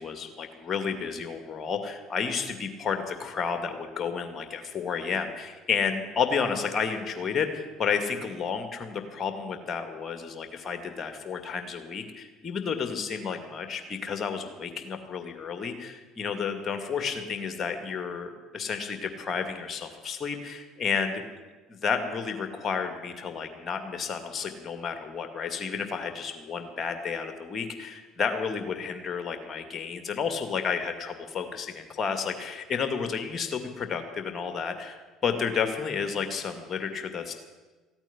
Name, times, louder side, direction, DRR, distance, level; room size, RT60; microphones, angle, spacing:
voice 1, 0.0-21.2 21.7-37.3, left 6 dB, 40° left, 7 dB, 2.3 m, -31 dB
15.5 x 8.9 x 10.0 m, 1.3 s
hypercardioid pair, 60°, 0 cm